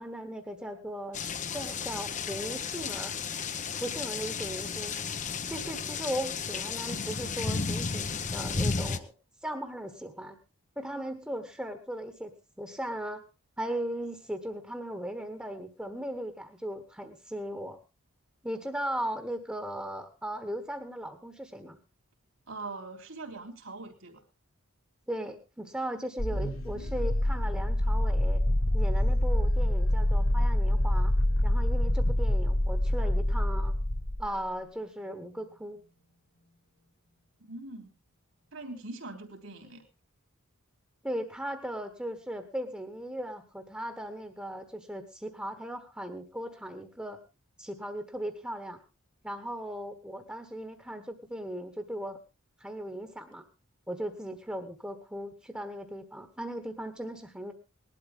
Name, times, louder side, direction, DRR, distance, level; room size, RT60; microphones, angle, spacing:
voice 1, 0.0-3.1 3.8-5.0 5.5-9.1 9.4-10.4 10.8-13.2 13.6-17.8 18.4-21.8 25.1-28.4 28.7-31.1 31.4-33.8 34.2-35.8 41.0-47.2 47.6-48.8 49.2-52.2 52.6-53.4 53.9-57.5, right 1 dB, 5° right, 6 dB, 1.3 m, -37 dB
sound 1, 1.1-9.0, left 5 dB, 35° left, 0.8 m, -33 dB
voice 2, 22.5-24.2 37.4-37.9 38.5-39.8, right 2 dB, 65° right, 4 dB, 3.5 m, -42 dB
sound 2, 26.2-34.4, left 1 dB, 65° left, 2.2 m, -26 dB
20.0 x 12.5 x 3.6 m, 0.29 s
head